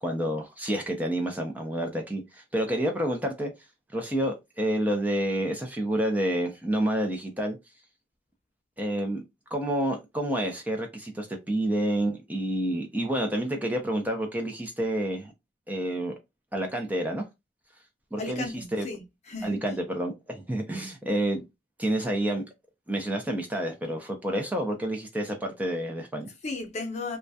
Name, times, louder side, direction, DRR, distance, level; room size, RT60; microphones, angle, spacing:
voice 1, 0.0-3.5 3.9-7.6 8.8-9.2 9.5-15.3 15.7-16.2 16.5-17.2 18.1-18.9 19.4-21.4 21.8-22.4 22.9-26.3, right 1 dB, 10° right, 0.4 m, -29 dB
voice 2, 18.2-19.6 26.4-27.2, left 3 dB, 40° left, 0.6 m, -35 dB
2.3 x 2.1 x 2.6 m
head